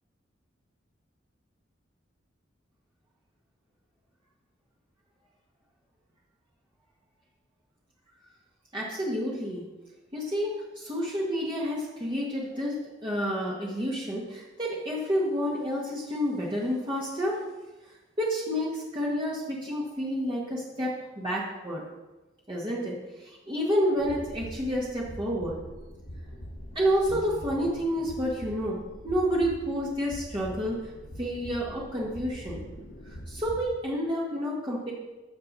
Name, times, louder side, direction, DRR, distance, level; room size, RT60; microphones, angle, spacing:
voice 1, 8.7-9.6 10.1-12.8 13.0-17.4 18.2-21.8 22.5-25.6 26.7-28.8 29.0-30.8 31.2-32.6 33.1-34.9, equal, 25° right, -5 dB, 1.5 m, -29 dB
sound 1, 24.0-33.6, equal, 85° left, 1.8 m, -43 dB
14.0 x 6.7 x 4.1 m, 1.1 s
head